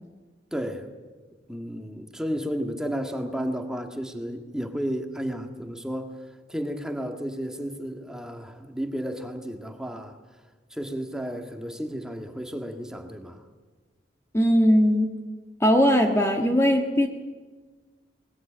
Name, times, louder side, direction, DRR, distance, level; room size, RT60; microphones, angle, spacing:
voice 1, 0.5-0.9 1.5-6.1 6.5-10.2 10.7-13.4, equal, 5° right, 1.8 m, -32 dB
voice 2, 14.3-15.1 15.6-17.1, equal, 15° left, 1.5 m, -19 dB
21.0 x 21.0 x 8.9 m
head